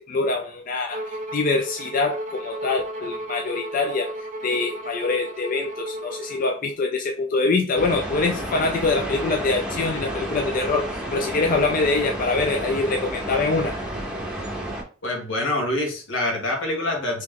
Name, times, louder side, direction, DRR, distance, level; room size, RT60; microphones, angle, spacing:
voice 1, 0.0-13.8, left 3 dB, 45° left, 3 dB, 0.4 m, -24 dB
Bowed string instrument, 0.9-6.7, right 1 dB, 40° right, 0.6 m, -34 dB
sound 1, 7.8-14.8, right 1 dB, 5° right, 0.8 m, -31 dB
voice 2, 15.0-17.2, left 1 dB, 80° left, 1 dB, 1.3 m, -25 dB
3.3 x 3.1 x 3.6 m, 0.38 s
head